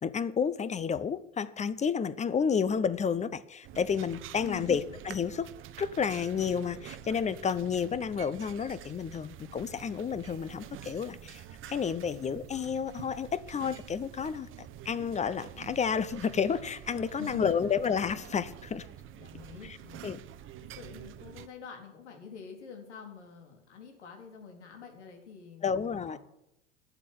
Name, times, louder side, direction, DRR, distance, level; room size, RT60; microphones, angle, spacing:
voice 1, 0.0-5.5 5.8-18.9 19.6-19.8 20.0-20.2 25.6-26.2, left 6 dB, 20° left, 16 dB, 0.8 m, -31 dB
sound 1, 3.6-21.5, right 11 dB, 35° right, 0.9 m, -47 dB
voice 2, 4.4-4.9 17.1-17.7 19.2-20.2 20.6-26.2, left 7 dB, 75° left, 3 dB, 4.0 m, -46 dB
12.5 x 8.2 x 8.6 m, 0.85 s
hypercardioid pair, 85°, 35 cm